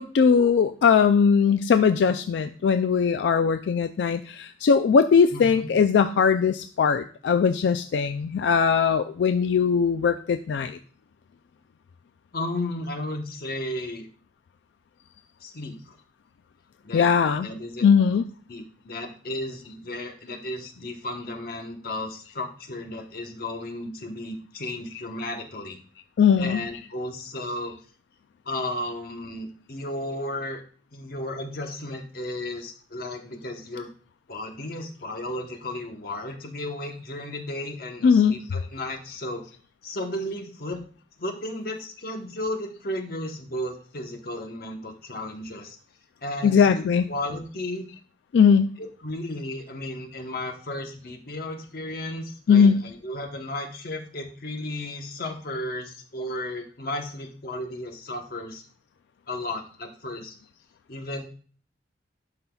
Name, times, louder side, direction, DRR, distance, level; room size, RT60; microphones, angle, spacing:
voice 1, 0.0-10.8 16.9-17.5 17.8-18.2 26.2-26.6 38.0-38.4 46.4-47.0 48.3-48.7 52.5-52.8, left 6 dB, 85° left, 10 dB, 0.3 m, -20 dB
voice 2, 5.3-5.7 12.3-14.1 15.4-15.9 16.8-17.1 17.4-17.9 18.5-25.8 26.4-27.8 28.4-30.6 30.9-33.9 34.3-39.5 39.8-40.8 41.2-45.8 46.2-47.9 48.8-58.6 59.3-60.3 60.9-61.3, left 1 dB, 55° left, 3 dB, 1.1 m, -34 dB
11.5 x 5.6 x 2.3 m, 0.42 s
head